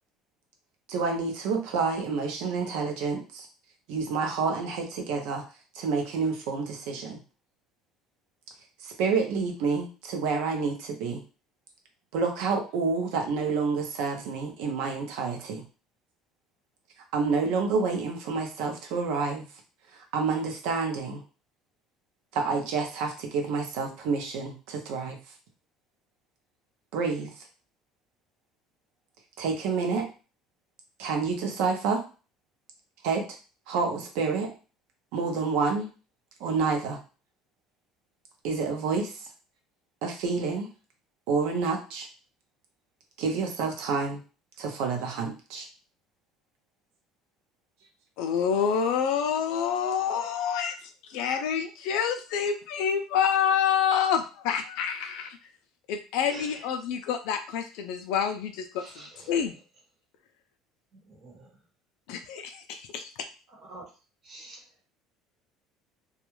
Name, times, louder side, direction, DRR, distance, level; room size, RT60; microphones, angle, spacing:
voice 1, 0.9-3.5 3.9-5.4 5.7-7.2 8.8-11.2 12.1-15.6 17.1-19.5 20.1-21.2 22.3-25.2 26.9-27.3 29.4-30.1 31.0-32.0 33.0-33.2 33.7-34.5 35.1-35.9 36.4-37.0 38.4-39.1 40.0-40.7 41.3-42.1 43.2-44.2 44.6-45.6, right 4 dB, 70° right, 3 dB, 0.7 m, -28 dB
voice 2, 48.2-50.8 51.1-55.4 55.9-58.8 59.3-59.6 62.1-63.1, left 7 dB, 70° left, 7 dB, 0.3 m, -27 dB
voice 3, 56.3-56.7 58.8-59.3 61.2-61.5 63.5-63.8 64.2-64.6, right 2 dB, 35° right, -2 dB, 1.1 m, -46 dB
2.3 x 2.2 x 3.0 m, 0.34 s
cardioid pair, 165°, 0 cm